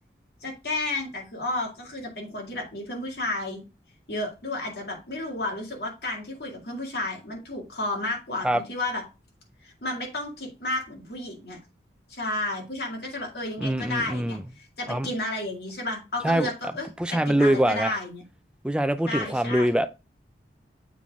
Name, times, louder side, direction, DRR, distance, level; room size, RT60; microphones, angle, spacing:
voice 1, 0.4-3.6 4.1-9.0 9.6-11.6 12.1-18.2 19.1-19.7, left 2 dB, 65° left, 2.2 m, -32 dB
voice 2, 13.6-14.4 14.9-15.1 16.2-16.5 17.0-18.0 18.6-20.0, right 1 dB, 5° right, 0.3 m, -24 dB
7.4 x 3.9 x 3.6 m
head